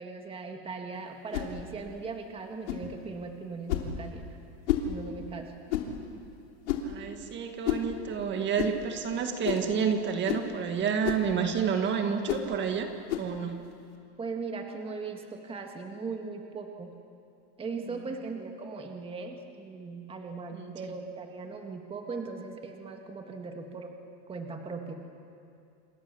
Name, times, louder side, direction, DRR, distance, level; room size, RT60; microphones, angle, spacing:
voice 1, 0.0-4.3 4.9-5.5 14.2-16.9 17.6-23.9 24.3-24.9, right 4 dB, 15° right, 4 dB, 1.8 m, -39 dB
sound 1, 1.3-1.5 2.7-2.9 3.7-3.9 4.7-4.9 5.7-5.9 6.7-6.9 7.6-7.9 8.6-8.8 9.4-9.7 10.3-10.5 11.0-11.3 12.3-12.5 13.1-13.3, left 10 dB, 90° left, 3.3 m, -30 dB
voice 2, 6.8-12.9 13.2-13.6 20.5-20.7, right 7 dB, 30° right, 6 dB, 1.9 m, -29 dB
27.5 x 26.5 x 7.1 m, 2.5 s
supercardioid pair, 145°, 35 cm